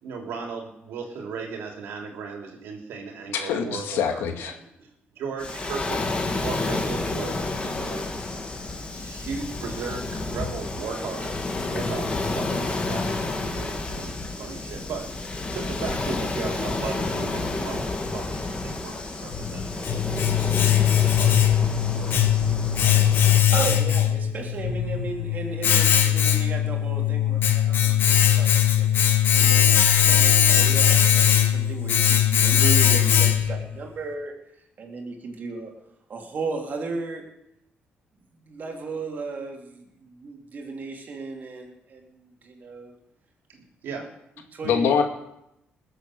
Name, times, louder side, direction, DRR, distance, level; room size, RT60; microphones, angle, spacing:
voice 1, 0.0-6.0 6.4-8.0 8.9-11.3 11.7-22.5 43.8-44.1, right 5 dB, 80° right, 2 dB, 3.3 m, -37 dB
voice 2, 3.3-4.5 44.6-45.0, left 7 dB, 90° left, 4 dB, 2.1 m, -24 dB
Waves surf, 5.4-23.4, left 2 dB, 30° left, 2.5 m, -30 dB
Domestic sounds home sounds, 19.3-33.7, left 10 dB, 65° left, 1.5 m, -20 dB
voice 3, 23.5-28.9 29.4-34.3 34.8-35.7 36.1-37.3 38.3-42.9 43.5-44.0 44.5-45.0, right 3 dB, 50° right, 1 dB, 3.5 m, -35 dB
20.5 x 8.1 x 6.6 m, 0.83 s
cardioid pair, 95°, 4 cm